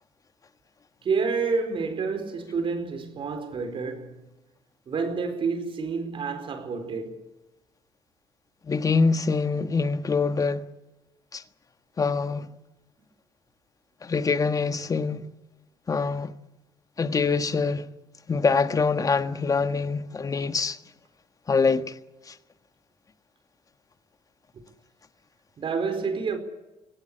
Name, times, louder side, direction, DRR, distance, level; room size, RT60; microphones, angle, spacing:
voice 1, 1.0-4.2 4.9-7.2 24.5-24.6 25.6-26.4, right 5 dB, 50° right, 4.5 m, -29 dB
voice 2, 8.6-10.6 11.3-11.4 12.0-12.5 14.0-15.3 15.9-16.3 17.0-17.9 18.3-20.8 21.5-22.0 22.3-22.4, left 4 dB, 30° left, 1.4 m, -24 dB
24.0 x 17.5 x 8.8 m
cardioid pair, 85°, 11 cm